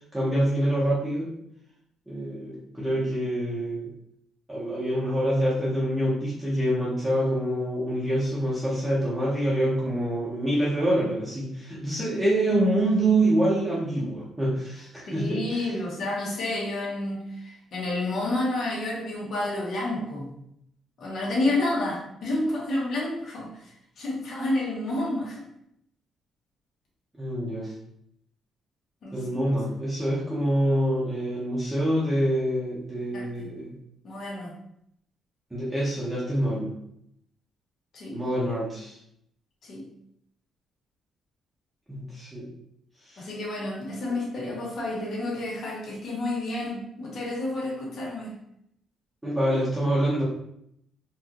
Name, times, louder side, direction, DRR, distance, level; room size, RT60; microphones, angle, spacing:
voice 1, 0.1-1.4 2.1-3.9 4.5-15.7 27.2-27.7 29.1-33.7 35.5-36.7 38.1-39.0 41.9-42.5 43.0-43.3 49.2-50.2, right 1 dB, 10° right, -7 dB, 1.0 m, -26 dB
voice 2, 15.1-20.3 21.0-25.4 29.0-29.4 33.1-33.5 34.0-34.6 37.9-38.2 39.6-39.9 43.2-48.4, left 2 dB, 55° left, -4 dB, 1.5 m, -30 dB
4.5 x 2.6 x 3.0 m, 0.74 s
cardioid pair, 105°, 0 cm